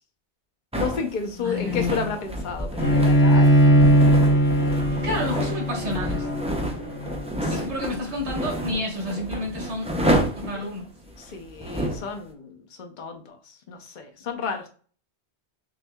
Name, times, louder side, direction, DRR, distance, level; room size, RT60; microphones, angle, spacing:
voice 1, 0.7-3.5 3.8-3.9 7.4-7.6 10.5-10.6 11.2-14.7, left 5 dB, 50° left, 4 dB, 0.8 m, -32 dB
sound 1, 0.7-12.1, right 1 dB, 10° right, 0.4 m, -29 dB
voice 2, 1.4-2.1 5.0-6.3 7.5-9.9 10.3-10.9, left 1 dB, 75° right, -1 dB, 1.7 m, -30 dB
Bowed string instrument, 2.8-8.1, equal, 65° left, 2.0 m, -19 dB
6.1 x 2.7 x 2.3 m, 0.41 s
omnidirectional pair, 1.1 m